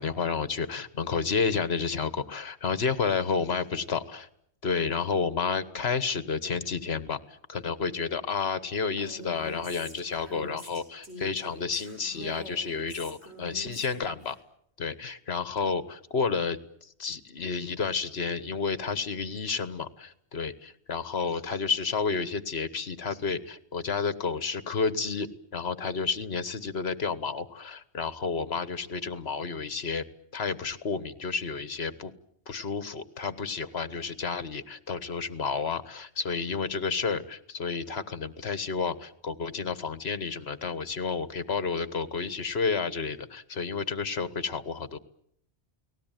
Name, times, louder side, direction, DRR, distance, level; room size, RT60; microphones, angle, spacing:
voice 1, 0.0-4.3 4.6-14.4 14.8-30.0 30.3-32.1 32.5-45.0, left 5 dB, 65° left, 14 dB, 1.6 m, -31 dB
Female speech woman speaking, 9.0-14.4, equal, 70° right, 7.7 m, -44 dB
29.5 x 19.0 x 9.2 m, 0.73 s
omnidirectional pair, 1.2 m